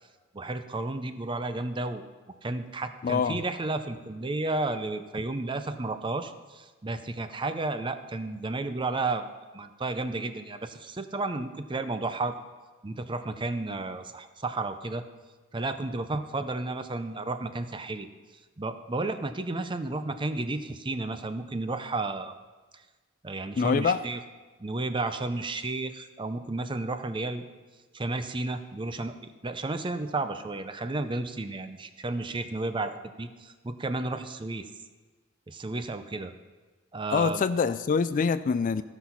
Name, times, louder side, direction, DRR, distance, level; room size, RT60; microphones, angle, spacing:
voice 1, 0.3-2.0 2.4-9.3 9.5-12.4 12.8-15.0 15.5-18.1 18.6-22.3 23.2-24.2 24.6-27.5 27.9-29.2 29.4-34.6 35.5-36.3 36.9-37.5, right 2 dB, 25° right, 10 dB, 0.6 m, -32 dB
voice 2, 3.0-3.4 23.6-24.0 37.1-38.8, left 5 dB, 40° left, 14 dB, 0.3 m, -25 dB
14.5 x 6.0 x 5.7 m, 1.3 s
head